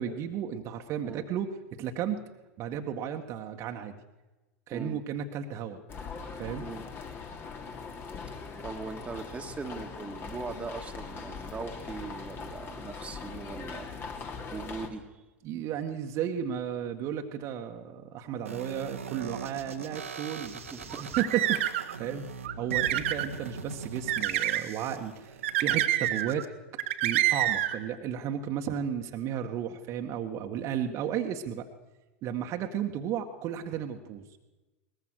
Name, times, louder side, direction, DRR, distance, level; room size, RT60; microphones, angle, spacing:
voice 1, 0.0-1.5 1.8-2.2 2.6-3.9 4.7-5.8 6.4-6.7 15.4-20.5 21.2-22.2 22.6-26.5 27.0-31.7 32.2-34.2, right 9 dB, 40° right, 4 dB, 1.8 m, -33 dB
voice 2, 4.7-5.0 6.6-6.9 8.6-13.9 14.5-15.1 20.4-21.2, right 4 dB, 15° right, 4 dB, 2.2 m, -40 dB
sound 1, 5.9-14.9, left 5 dB, 30° left, 3.3 m, -41 dB
sound 2, 18.5-26.5, right 5 dB, 80° right, 1.9 m, -42 dB
sound 3, 20.9-21.9 22.4-23.3 24.1-24.7 25.4-26.4 26.8-27.8, right 13 dB, 60° right, 1.8 m, -27 dB
22.0 x 21.0 x 6.6 m, 1.1 s
figure-of-eight pair, 85°, 7 cm